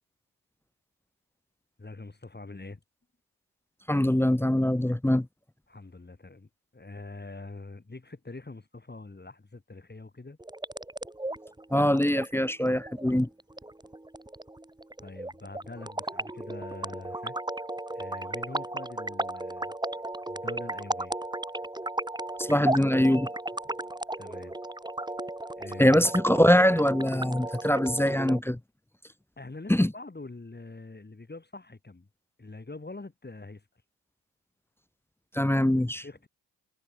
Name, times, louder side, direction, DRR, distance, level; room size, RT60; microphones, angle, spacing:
voice 1, 1.8-2.8 5.7-10.4 15.0-17.4 17.9-19.7 20.3-21.1 24.2-24.6 25.5-26.1 29.4-32.1 32.4-33.7 35.9-36.3, left 3 dB, 25° left, 4.7 m, -44 dB
voice 2, 3.9-5.3 11.7-13.3 22.4-23.3 25.8-28.6 29.7-29.9 35.3-36.0, left 1 dB, 5° left, 0.7 m, -23 dB
sound 1, 10.4-28.4, right 2 dB, 10° right, 1.6 m, -35 dB
supercardioid pair, 50°, 42 cm